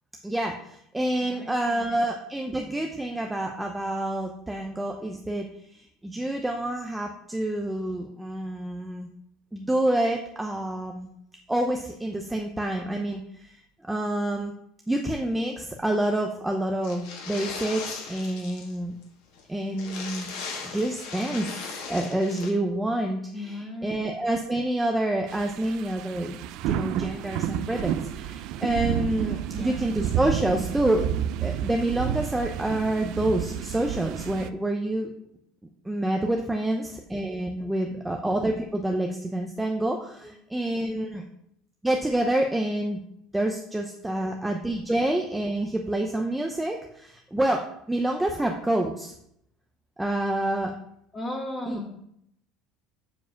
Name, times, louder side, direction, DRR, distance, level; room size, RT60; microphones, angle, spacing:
voice 1, 0.2-9.1 9.5-11.1 11.5-13.6 13.9-14.5 14.9-19.0 19.5-20.3 20.6-21.5 21.9-26.4 26.6-31.1 31.4-35.1 35.8-41.2 41.8-43.0 43.3-49.1 50.0-50.7 51.7-51.8, right 1 dB, 5° right, 2 dB, 0.6 m, -28 dB
voice 2, 1.2-2.0 23.3-24.0 29.5-29.9 37.6-37.8 40.2-40.3 40.7-41.3 51.1-52.1, left 1 dB, 15° left, 2 dB, 1.7 m, -38 dB
sound 1, 16.8-18.8 19.0-19.1 19.4-19.5 19.7-22.5, left 5 dB, 65° left, 1.9 m, -37 dB
sound 2, 25.3-34.5, right 11 dB, 55° right, 0.4 m, -30 dB
7.3 x 4.7 x 7.0 m, 0.74 s
cardioid pair, 165°, 0 cm